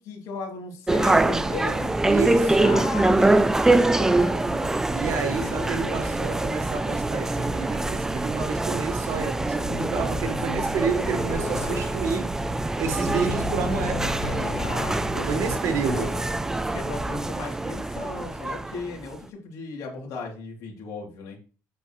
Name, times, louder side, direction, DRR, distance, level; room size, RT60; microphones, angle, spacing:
voice 1, 0.0-6.2 10.3-10.4 14.6-15.3 16.7-21.4, left 4 dB, 65° left, 3.1 m, -37 dB
sound 1, 0.9-19.1, right 2 dB, 10° right, 0.4 m, -24 dB
voice 2, 2.0-2.8 4.9-14.2 15.2-16.2, right 5 dB, 55° right, 1.6 m, -30 dB
sound 2, 9.6-16.3, left 4 dB, 15° left, 2.4 m, -35 dB
8.2 x 5.2 x 3.2 m
cardioid pair, 140°, 6 cm